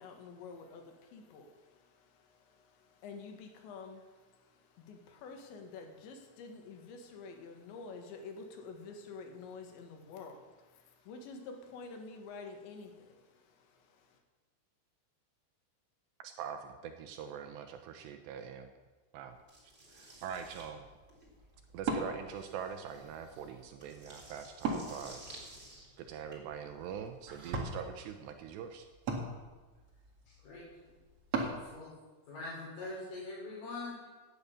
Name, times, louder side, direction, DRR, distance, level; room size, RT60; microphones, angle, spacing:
voice 1, 0.0-14.2, left 4 dB, 90° left, 4 dB, 4.1 m, -49 dB
voice 2, 16.2-18.7 19.1-19.4 19.9-20.9 21.7-25.2 26.0-28.9, right 8 dB, 80° right, 7 dB, 3.0 m, -43 dB
sound 1, 19.5-26.4, right 1 dB, 15° right, 3.1 m, -54 dB
Wood, 20.1-31.6, right 3 dB, 45° right, 2.3 m, -42 dB
voice 3, 30.3-30.6 31.3-31.9 32.3-34.1, left 2 dB, 50° left, -6 dB, 4.8 m, -43 dB
17.5 x 9.6 x 7.0 m, 1.3 s
omnidirectional pair, 5.0 m